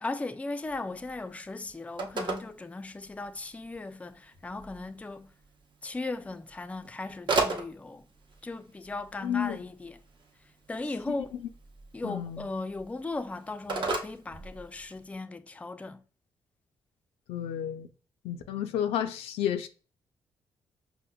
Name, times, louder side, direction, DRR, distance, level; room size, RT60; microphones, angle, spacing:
voice 1, 0.0-5.3 5.8-8.0 8.4-10.0 10.7-11.4 11.9-16.0, left 2 dB, 15° left, 0.3 m, -37 dB
Telephone, 0.6-15.1, right 3 dB, 50° right, 0.8 m, -38 dB
voice 2, 9.2-9.6 12.0-12.5 17.3-17.9 18.2-19.7, left 10 dB, 90° left, 0.4 m, -31 dB
5.0 x 2.1 x 2.2 m
cardioid pair, 65°, 10 cm